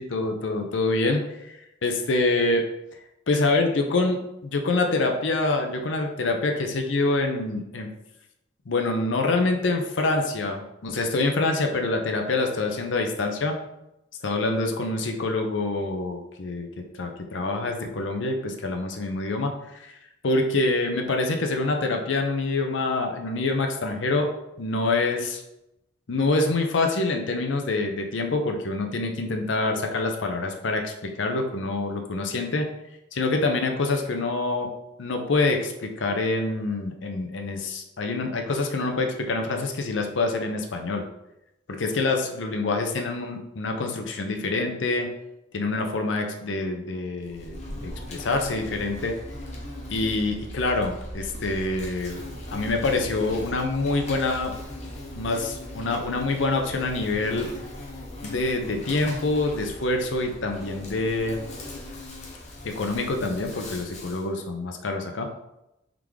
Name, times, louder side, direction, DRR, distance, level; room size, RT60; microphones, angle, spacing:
voice 1, 0.0-2.6 3.3-7.9 8.7-13.5 14.2-16.7 17.0-20.0 20.2-24.3 24.6-25.4 26.1-32.7 33.1-34.7 35.0-41.0 41.7-45.1 45.5-49.2 49.9-52.2 52.5-54.5 55.1-57.5 58.2-61.4 62.6-65.3, left 2 dB, 75° left, 4 dB, 0.6 m, -26 dB
Insect, 47.2-64.3, left 1 dB, 35° left, 0.8 m, -39 dB
3.7 x 3.5 x 3.2 m, 0.89 s
head